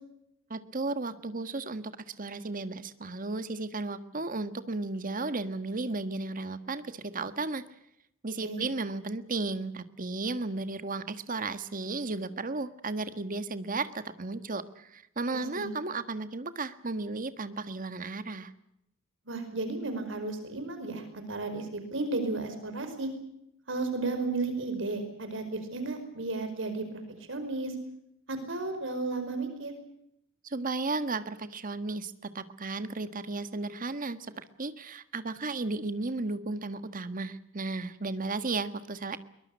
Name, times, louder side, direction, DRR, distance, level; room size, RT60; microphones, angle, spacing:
voice 1, 0.5-7.6 8.2-18.5 30.4-39.2, right 3 dB, 40° right, 11 dB, 1.5 m, -34 dB
voice 2, 15.3-15.7 19.3-23.1 23.7-27.0 27.3-27.7 28.3-29.7, right 3 dB, 65° right, 8 dB, 5.0 m, -33 dB
23.0 x 21.5 x 8.2 m, 0.80 s
head